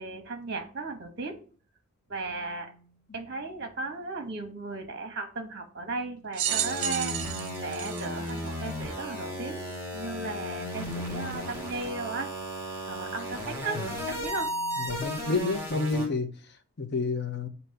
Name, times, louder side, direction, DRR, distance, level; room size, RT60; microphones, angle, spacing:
voice 1, 0.0-1.4 2.1-2.7 3.1-7.1 7.6-9.6 9.9-12.3 12.9-14.5, right 3 dB, 50° right, 1.2 m, -36 dB
sound 1, 2.5-2.9 6.0-7.9 10.0-11.7 13.7-16.0, right 1 dB, 30° left, 1.9 m, -45 dB
sound 2, 6.3-9.0 9.7-9.8 10.9-11.0, right 10 dB, 75° right, 0.7 m, -32 dB
sound 3, 6.5-16.1, equal, 10° right, 2.0 m, -35 dB
voice 2, 14.8-17.5, left 3 dB, 50° left, 0.7 m, -30 dB
7.7 x 2.8 x 5.7 m
head